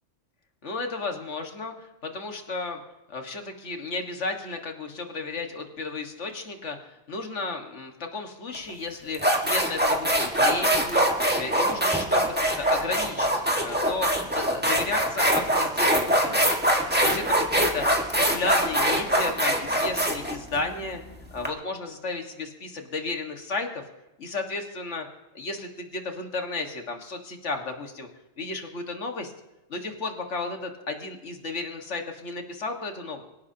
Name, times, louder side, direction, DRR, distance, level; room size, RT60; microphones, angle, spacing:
voice 1, 0.6-2.8 3.1-6.8 7.1-11.1 11.3-13.3 13.6-16.5 17.0-21.0 21.3-23.8 24.2-25.1 25.3-28.1 28.4-29.3 29.7-33.2, left 3 dB, 70° left, 4 dB, 2.0 m, -33 dB
sound 1, 8.5-8.7 9.1-21.5, right 1 dB, 10° right, 1.6 m, -23 dB
25.0 x 16.5 x 2.9 m, 0.98 s
omnidirectional pair, 1.3 m